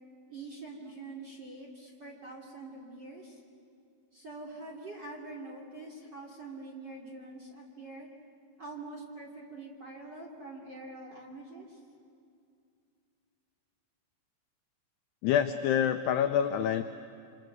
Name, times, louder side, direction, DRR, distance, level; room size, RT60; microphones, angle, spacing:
voice 1, 0.3-3.4 4.1-8.1 8.6-11.8, right 2 dB, 30° right, -1 dB, 2.5 m, -45 dB
voice 2, 15.2-16.8, left 9 dB, 85° left, 7 dB, 2.3 m, -26 dB
28.5 x 26.5 x 8.0 m, 2.4 s
omnidirectional pair, 5.7 m